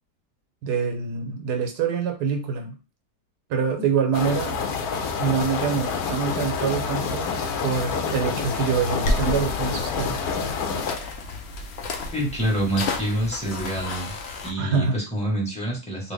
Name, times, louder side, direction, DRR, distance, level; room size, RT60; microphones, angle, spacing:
voice 1, 0.6-2.8 3.5-4.6 5.2-7.3 7.6-10.2 14.6-15.0, right 6 dB, 75° right, 5 dB, 1.3 m, -25 dB
sound 1, 4.1-11.0, left 5 dB, 70° left, 1.0 m, -28 dB
sound 2, 9.0-14.5, left 2 dB, 90° left, 0.5 m, -31 dB
voice 2, 12.1-14.1 14.4-16.1, right 1 dB, 5° left, -4 dB, 0.9 m, -27 dB
2.9 x 2.7 x 3.3 m, 0.32 s
omnidirectional pair, 1.8 m